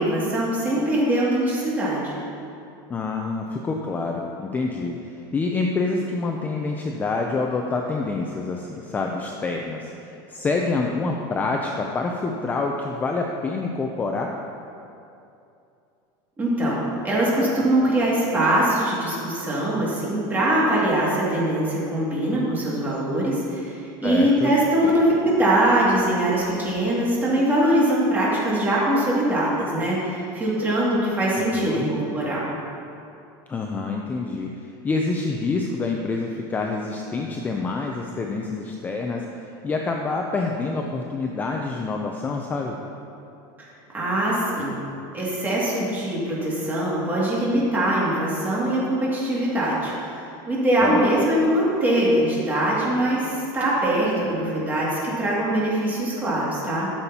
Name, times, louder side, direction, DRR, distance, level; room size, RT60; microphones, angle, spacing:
voice 1, 0.0-2.1 16.4-16.8 17.0-32.4 43.9-44.8 45.1-56.9, right 1 dB, 15° right, -6 dB, 2.2 m, -22 dB
voice 2, 2.9-14.3 24.0-24.6 31.4-31.9 33.5-42.8 50.8-51.0, left 3 dB, 15° left, 1 dB, 0.4 m, -27 dB
13.0 x 7.0 x 2.8 m, 2.7 s
supercardioid pair, 150°, 11 cm